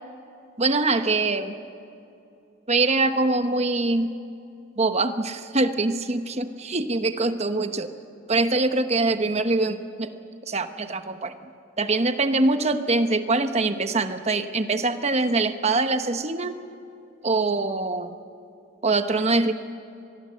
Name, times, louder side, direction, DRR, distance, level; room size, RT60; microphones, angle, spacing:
voice 1, 0.6-1.6 2.7-4.1 4.8-7.9 8.3-10.1 10.5-11.3 11.8-16.6 17.2-18.2 18.8-19.5, right 3 dB, 35° right, 9 dB, 1.0 m, -23 dB
25.5 x 20.0 x 7.9 m, 2.6 s
head